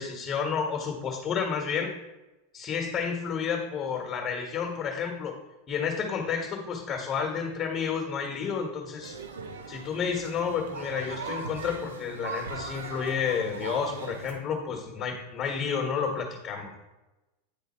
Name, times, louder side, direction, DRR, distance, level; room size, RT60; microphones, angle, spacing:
voice 1, 0.0-2.0 2.5-5.3 5.7-9.2 9.7-16.7, left 6 dB, 30° left, 1 dB, 1.4 m, -30 dB
sound 1, 9.0-14.3, right 4 dB, 75° right, 1.0 m, -39 dB
9.4 x 3.4 x 4.3 m, 1.1 s
hypercardioid pair, 90°, 0 cm